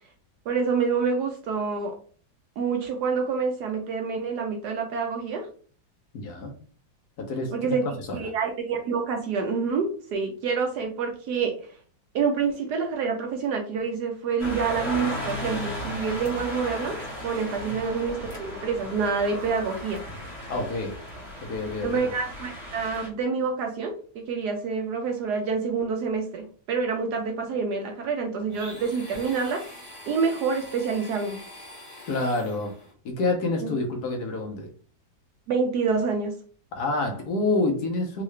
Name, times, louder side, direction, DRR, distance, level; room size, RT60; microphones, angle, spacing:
voice 1, 0.5-2.0 2.6-5.5 7.5-7.8 8.1-11.5 12.1-17.0 17.2-20.0 21.8-31.4 33.6-33.7 35.5-36.3, right 5 dB, 70° right, 4 dB, 1.0 m, -27 dB
voice 2, 6.1-6.5 7.2-8.2 17.6-17.7 20.5-21.0 21.4-22.1 32.1-32.7 33.0-34.7 36.7-38.2, left 2 dB, 65° left, 3 dB, 1.1 m, -28 dB
sound 1, 14.4-23.1, left 1 dB, 25° right, 1.3 m, -36 dB
Domestic sounds home sounds, 28.5-32.9, left 1 dB, 20° left, 1.0 m, -44 dB
3.7 x 2.4 x 3.1 m, 0.43 s
omnidirectional pair, 2.1 m